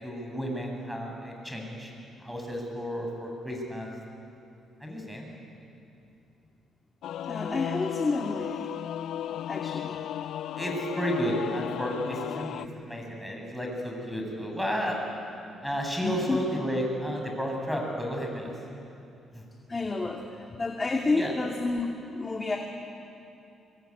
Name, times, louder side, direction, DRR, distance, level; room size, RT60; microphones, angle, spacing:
voice 1, 0.0-1.9 2.2-3.9 4.8-5.3 10.6-15.0 15.6-18.5 19.3-19.4 21.1-21.3, equal, ahead, 0 dB, 7.2 m, -32 dB
Singing / Musical instrument, 7.0-12.7, left 11 dB, 80° left, 0.5 m, -35 dB
voice 2, 7.3-8.7 9.5-10.0 16.0-16.4 19.7-22.6, left 3 dB, 25° left, 1 dB, 2.4 m, -30 dB
24.0 x 24.0 x 9.8 m, 2.8 s
cardioid pair, 90°, 0 cm